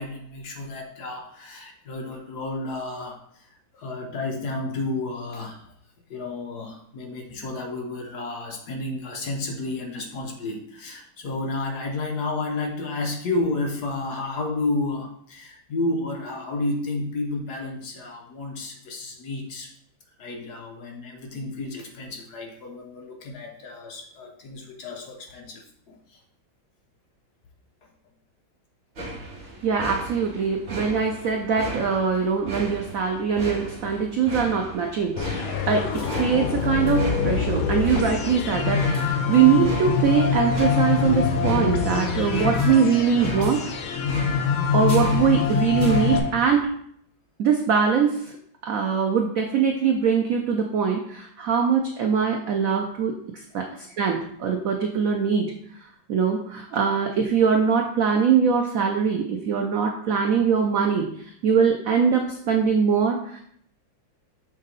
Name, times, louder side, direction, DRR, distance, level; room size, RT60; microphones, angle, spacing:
voice 1, 0.0-5.6 6.1-19.7 20.2-26.2 27.8-27.9 44.1-44.2 53.5-53.6, left 2 dB, 60° left, 1 dB, 1.3 m, -31 dB
sound 1, 29.0-46.6, right 2 dB, 35° right, 1.5 m, -36 dB
voice 2, 29.6-43.6 44.7-46.7 47.4-48.3 48.6-53.1 53.5-55.5 56.1-61.1 61.4-63.4, right 6 dB, 85° right, 3 dB, 0.7 m, -22 dB
sound 2, 35.2-46.2, left 6 dB, 80° left, 1.5 m, -24 dB
6.3 x 4.0 x 3.9 m, 0.67 s
omnidirectional pair, 2.2 m